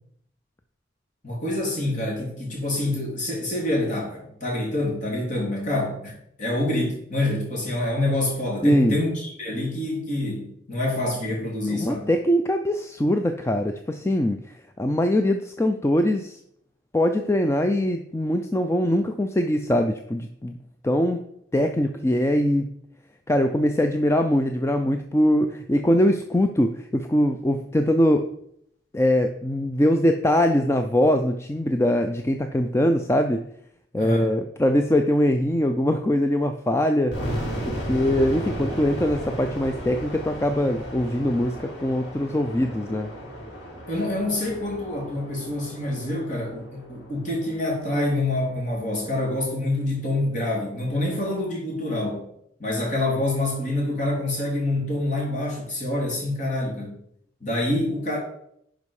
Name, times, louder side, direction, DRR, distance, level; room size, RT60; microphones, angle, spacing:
voice 1, 1.2-12.1 34.0-34.3 43.9-52.3 52.6-57.0 57.4-58.2, left 1 dB, 40° left, -2 dB, 3.4 m, -26 dB
voice 2, 8.6-9.0 11.7-16.4 16.9-20.5 20.8-21.2 21.5-22.7 23.3-28.2 28.9-33.4 33.9-37.2 37.7-43.1, left 1 dB, 15° left, 6 dB, 0.4 m, -22 dB
sound 1, 37.1-48.0, equal, 75° left, 4.2 m, -34 dB
11.0 x 5.1 x 4.8 m, 0.72 s
head